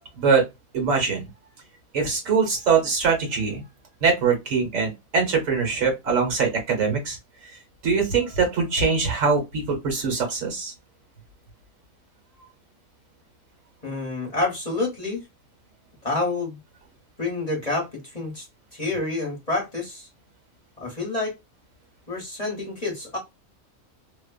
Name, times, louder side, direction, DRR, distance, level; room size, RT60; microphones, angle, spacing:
voice 1, 0.2-0.5 0.7-1.3 1.9-3.6 4.0-7.2 7.8-10.7, right 5 dB, 70° right, 1.5 m, -22 dB
voice 2, 13.8-15.2 16.0-16.6 17.2-18.5 18.7-20.1 20.8-21.3 22.1-23.2, left 2 dB, 30° left, 1.0 m, -28 dB
2.9 x 2.1 x 2.3 m
omnidirectional pair, 1.4 m